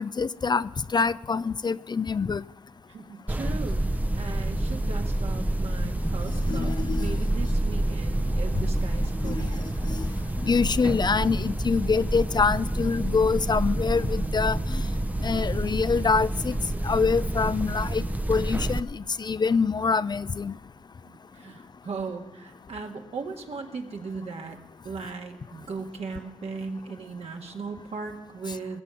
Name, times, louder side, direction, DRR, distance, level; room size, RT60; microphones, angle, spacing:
voice 1, 0.0-2.4 6.5-7.2 9.2-9.5 9.9-10.1 10.5-14.9 15.2-16.6 16.8-20.5, left 5 dB, 40° left, 0.4 m, -25 dB
voice 2, 2.9-9.7 21.0-24.6 24.8-28.8, right 4 dB, 65° right, 1.9 m, -38 dB
sound 1, 3.3-18.8, right 1 dB, 15° right, 0.8 m, -28 dB
20.5 x 7.5 x 7.2 m
supercardioid pair, 45°, 12 cm